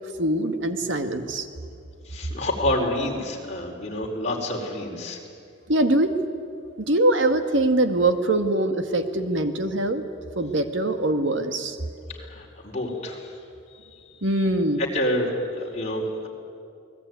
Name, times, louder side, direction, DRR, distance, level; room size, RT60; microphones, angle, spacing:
voice 1, 0.2-1.5 5.7-6.2 6.9-10.0 10.4-11.8 14.2-14.8, right 1 dB, 75° right, 8 dB, 1.9 m, -23 dB
voice 2, 2.1-5.2 12.2-13.3 14.9-16.3, left 1 dB, 35° left, -1 dB, 4.4 m, -28 dB
28.5 x 20.0 x 9.6 m, 2.5 s
head